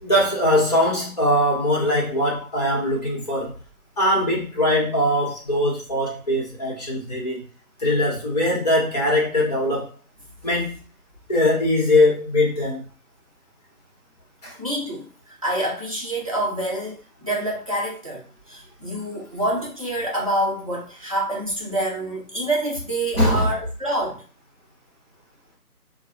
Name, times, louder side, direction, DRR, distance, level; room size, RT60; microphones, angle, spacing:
voice 1, 0.0-3.5 4.0-7.4 7.8-9.9 10.4-10.7 11.3-12.9 14.4-14.6 23.1-23.5, left 1 dB, 25° left, -4 dB, 1.3 m, -21 dB
voice 2, 14.6-15.1 15.4-18.2 18.5-24.2, right 1 dB, 25° right, -4 dB, 0.7 m, -27 dB
3.6 x 2.3 x 3.1 m, 0.38 s
figure-of-eight pair, 160°, 45 cm